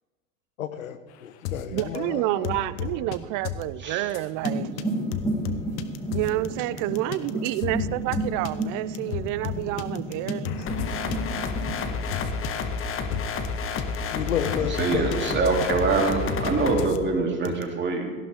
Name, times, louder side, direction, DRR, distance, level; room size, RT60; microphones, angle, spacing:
voice 1, 0.6-3.1 7.2-7.5 14.0-15.4, left 9 dB, 85° left, 11 dB, 1.1 m, -32 dB
sound 1, 1.4-2.0 2.4-3.2 3.4-3.7 4.1-4.5 4.8-4.9 5.1-6.5 6.8-13.5 13.8-14.0 14.3-16.5 16.8-17.0 17.4-17.6, left 9 dB, 60° left, 1.3 m, -34 dB
voice 2, 1.7-4.9 6.1-11.0, right 16 dB, 50° right, 18 dB, 0.7 m, -29 dB
voice 3, 3.8-4.1 14.6-18.1, right 4 dB, 30° right, 1 dB, 3.2 m, -25 dB
sound 2, 4.3-12.0, right 1 dB, 10° left, 4.8 m, -32 dB
sound 3, 10.7-16.9, left 5 dB, 35° left, 1.5 m, -30 dB
18.0 x 15.0 x 3.7 m, 1.4 s
hypercardioid pair, 85°, 39 cm